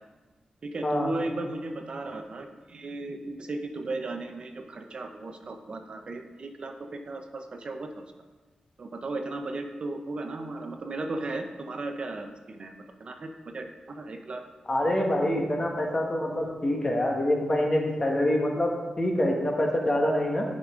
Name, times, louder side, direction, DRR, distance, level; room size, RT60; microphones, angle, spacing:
voice 1, 0.6-7.9 8.8-14.4, right 2 dB, 45° right, 5 dB, 0.6 m, -36 dB
voice 2, 14.7-20.4, left 1 dB, 30° left, 1 dB, 1.3 m, -26 dB
10.5 x 5.3 x 3.6 m, 1.2 s
wide cardioid pair, 135°, 2 cm